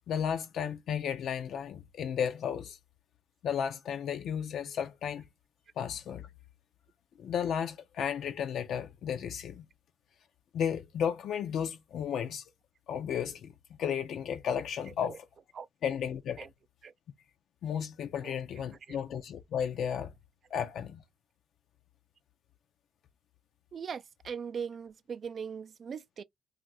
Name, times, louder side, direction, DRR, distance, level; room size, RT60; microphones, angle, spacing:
voice 1, 0.1-2.8 3.4-5.3 5.8-6.3 7.2-9.7 10.5-12.4 12.9-15.3 15.8-16.4 17.6-20.1 20.5-21.0, left 8 dB, 70° left, 0.5 m, -33 dB
voice 2, 23.7-26.2, right 6 dB, 50° right, 0.4 m, -40 dB
2.5 x 2.4 x 4.0 m
cardioid pair, 90°, 0 cm